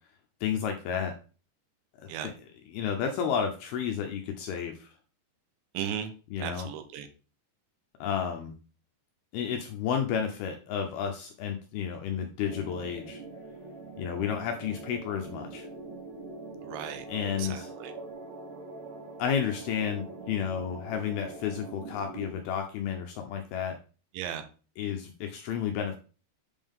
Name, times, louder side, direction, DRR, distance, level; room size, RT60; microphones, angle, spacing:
voice 1, 0.4-1.1 2.0-2.3 2.7-4.9 6.3-6.7 8.0-8.5 9.3-13.2 14.0-15.7 17.1-17.7 19.2-23.8 24.8-26.0, left 8 dB, 80° left, 4 dB, 2.2 m, -31 dB
voice 2, 5.7-6.1 6.4-7.1 16.6-17.1 17.4-17.9 24.1-24.4, right 9 dB, 90° right, 8 dB, 3.1 m, -36 dB
sound 1, 12.4-22.3, right 3 dB, 70° right, 4.0 m, -43 dB
7.9 x 5.4 x 3.6 m, 0.35 s
omnidirectional pair, 5.2 m